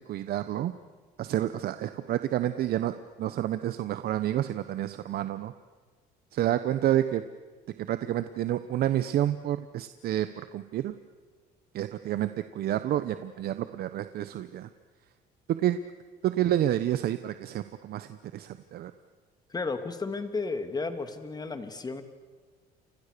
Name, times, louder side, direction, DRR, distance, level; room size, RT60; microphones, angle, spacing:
voice 1, 0.1-0.7 1.2-5.5 6.3-7.2 7.8-10.9 11.7-14.7 15.5-15.8 16.2-18.9, right 12 dB, 65° right, 11 dB, 1.1 m, -29 dB
voice 2, 19.5-22.0, left 3 dB, 25° left, 8 dB, 2.7 m, -33 dB
30.0 x 26.0 x 6.9 m, 1.4 s
cardioid pair, 110°, 17 cm